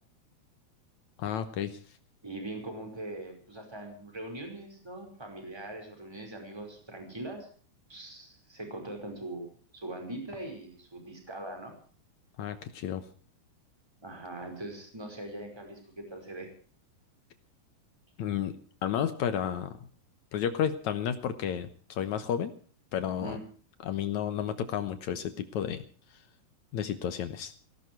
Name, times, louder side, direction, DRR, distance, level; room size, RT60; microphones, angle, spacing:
voice 1, 1.2-1.8 12.4-13.0 18.2-18.6 18.8-19.8 20.3-22.5 22.9-23.4 23.8-25.8 26.7-27.5, left 9 dB, 75° left, 10 dB, 1.7 m, -32 dB
voice 2, 2.2-7.5 7.9-11.7 14.0-16.5 23.2-23.4, right 1 dB, 5° right, 4 dB, 4.7 m, -41 dB
18.5 x 17.0 x 4.6 m, 0.43 s
omnidirectional pair, 4.8 m